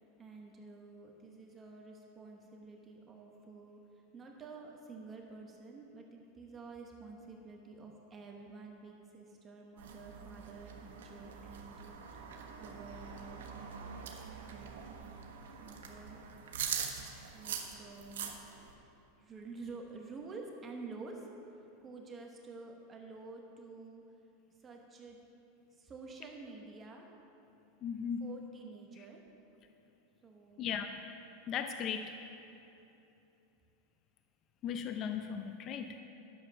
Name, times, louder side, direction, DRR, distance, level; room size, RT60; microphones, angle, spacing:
voice 1, 0.2-13.4 14.5-15.0 15.6-16.2 17.3-18.4 19.2-24.0 24.6-25.2 25.7-27.1 28.2-29.2 30.2-30.8, right 3 dB, 20° right, 1 dB, 1.1 m, -50 dB
sound 1, 9.8-18.7, right 7 dB, 90° right, 1.1 m, -43 dB
voice 2, 27.8-28.2 30.6-31.0 31.5-32.1 34.6-36.0, left 7 dB, 35° left, 7 dB, 0.5 m, -37 dB
11.0 x 7.3 x 5.8 m, 2.9 s
supercardioid pair, 135°, 0 cm